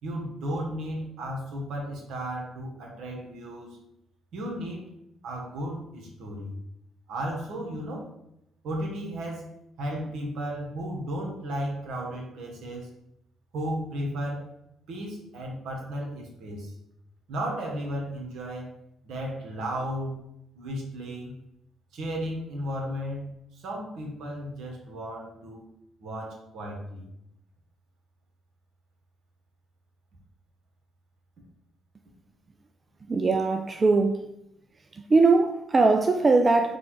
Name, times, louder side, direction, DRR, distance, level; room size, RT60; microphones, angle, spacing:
voice 1, 0.0-3.8 4.3-4.8 5.2-6.6 7.1-8.1 8.6-9.5 9.8-12.9 13.5-14.5 14.9-16.7 17.3-18.7 19.0-20.1 20.5-21.3 21.9-25.6 26.0-27.1, equal, 75° right, 1.2 m, -34 dB
voice 2, 33.1-34.3 34.9-36.8, right 3 dB, 35° right, 0.3 m, -21 dB
4.0 x 2.4 x 4.5 m
supercardioid pair, 75°, 0 cm